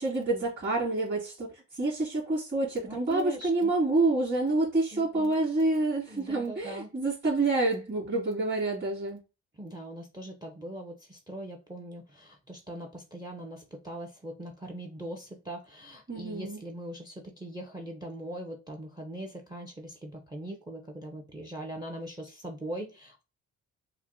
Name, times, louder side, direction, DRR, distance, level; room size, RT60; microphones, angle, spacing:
voice 1, 0.0-9.2 16.1-16.6, right 2 dB, 35° right, 2.3 m, -28 dB
voice 2, 2.8-3.7 4.9-5.4 6.1-6.9 9.6-23.2, right 1 dB, 15° right, 0.6 m, -41 dB
5.6 x 2.1 x 2.6 m
cardioid pair, 90°, 30 cm